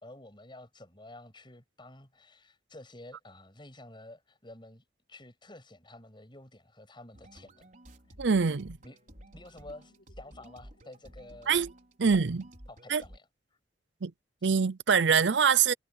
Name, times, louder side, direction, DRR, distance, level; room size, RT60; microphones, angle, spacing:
voice 1, 0.0-7.7 8.8-9.0 9.3-11.6 12.0-12.2 12.7-13.3, left 1 dB, 25° left, 6.8 m, -50 dB
sound 1, 7.1-13.2, equal, 45° right, 5.4 m, -52 dB
sound 2, 8.0-12.2, left 1 dB, 70° left, 4.6 m, -68 dB
voice 2, 8.2-8.8 11.5-11.7 12.0-12.5 12.9-13.0 14.0-14.1 14.4-15.7, right 6 dB, 80° right, 0.6 m, -24 dB
head